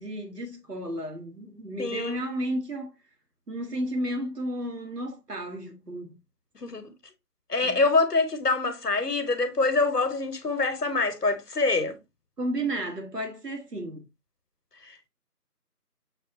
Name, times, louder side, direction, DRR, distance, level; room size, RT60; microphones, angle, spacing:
voice 1, 0.0-2.9 3.5-6.2 7.6-7.8 12.4-14.1, right 1 dB, 80° right, 1.2 m, -33 dB
voice 2, 1.8-2.2 6.6-6.9 7.5-12.0 14.8-15.1, left 3 dB, 75° left, 0.9 m, -25 dB
6.3 x 2.4 x 2.6 m
figure-of-eight pair, 175°, 48 cm